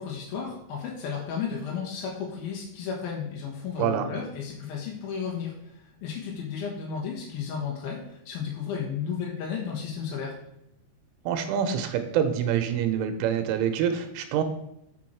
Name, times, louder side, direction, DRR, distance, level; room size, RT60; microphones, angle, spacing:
voice 1, 0.0-10.4, left 6 dB, 70° left, -2 dB, 2.4 m, -33 dB
voice 2, 11.3-14.4, right 8 dB, 90° right, 7 dB, 3.2 m, -26 dB
6.9 x 6.1 x 4.5 m, 0.79 s
omnidirectional pair, 5.6 m